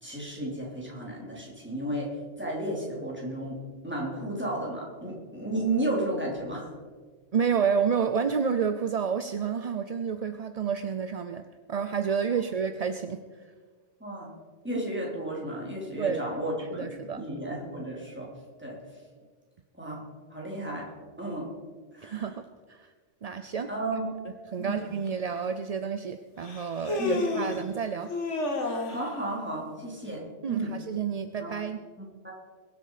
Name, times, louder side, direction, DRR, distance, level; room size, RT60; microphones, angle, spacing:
voice 1, 0.0-2.1 2.4-6.7 14.0-14.3 14.6-16.9 17.2-18.3 18.6-18.8 19.7-20.0 20.3-20.9 21.2-21.5 21.9-22.3 23.7-24.1 24.6-24.8 27.0-27.6 28.9-30.7 31.4-31.5 32.0-32.3, right 1 dB, 10° right, -4 dB, 4.0 m, -33 dB
voice 2, 7.3-13.2 16.0-16.3 16.7-17.2 22.0-22.9 23.2-23.7 24.5-28.1 30.4-31.8, right 6 dB, 45° right, 9 dB, 0.5 m, -30 dB
Human voice, 25.1-25.2 26.4-27.6 28.1-29.1, left 2 dB, 75° left, 1.9 m, -30 dB
22.0 x 8.3 x 5.0 m, 1.5 s
omnidirectional pair, 1.2 m